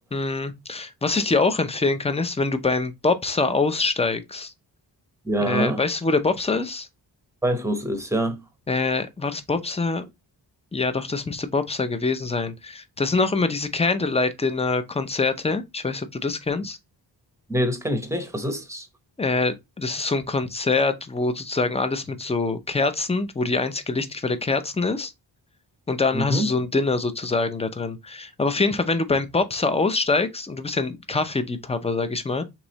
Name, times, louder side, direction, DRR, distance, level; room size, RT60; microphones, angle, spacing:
voice 1, 0.1-4.5 5.5-6.9 8.7-10.0 10.7-16.8 19.2-25.1 25.9-32.4, left 3 dB, 15° left, 0.5 m, -24 dB
voice 2, 5.2-5.8 7.4-8.4 17.5-18.9 26.1-26.5, equal, 5° right, 0.8 m, -25 dB
3.5 x 3.0 x 4.0 m
wide cardioid pair, 110°, 43 cm